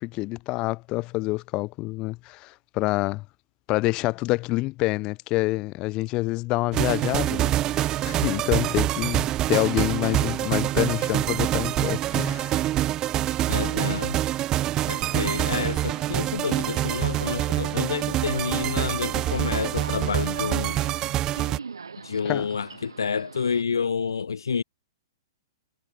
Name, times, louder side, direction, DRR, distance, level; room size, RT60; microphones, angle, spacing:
voice 1, 0.0-3.2 3.7-12.6 22.3-22.5, left 21 dB, 35° left, 1.7 m, -27 dB
sound 1, 6.7-21.6, right 14 dB, 30° right, 1.1 m, -26 dB
voice 2, 13.5-14.2 14.9-20.8 22.0-24.6, left 6 dB, 80° left, 0.4 m, -29 dB
Subway metro underground, 14.7-23.6, right 5 dB, 85° right, 2.6 m, -42 dB
hypercardioid pair, 120°, 2 cm